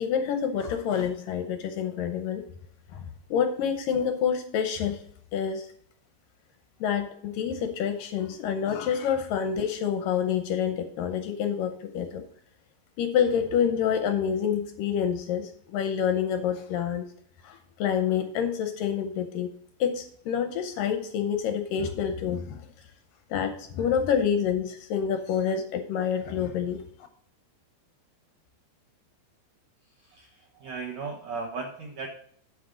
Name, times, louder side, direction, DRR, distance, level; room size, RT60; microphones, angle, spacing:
voice 1, 0.0-2.4 2.9-5.0 5.3-5.7 6.8-12.2 13.0-17.1 17.4-22.7 23.3-26.8, left 8 dB, 75° left, 7 dB, 2.1 m, -27 dB
voice 2, 30.0-32.1, right 4 dB, 75° right, 2 dB, 1.6 m, -36 dB
8.8 x 8.3 x 3.7 m, 0.63 s
omnidirectional pair, 4.5 m